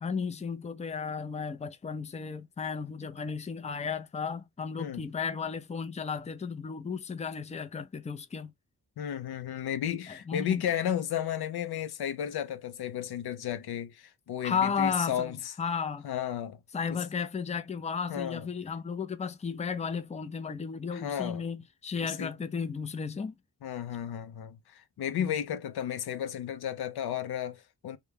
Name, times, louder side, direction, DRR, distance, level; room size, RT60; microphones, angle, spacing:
voice 1, 0.0-8.5 10.1-10.7 14.4-16.1 16.7-23.3 25.2-25.4, left 6 dB, 20° left, 0.4 m, -34 dB
voice 2, 9.0-15.5 16.0-16.6 16.9-17.0 18.1-18.5 20.9-21.4 22.0-22.3 23.6-28.0, left 9 dB, 75° left, 0.5 m, -33 dB
2.3 x 2.2 x 3.1 m
cardioid pair, 50°, 38 cm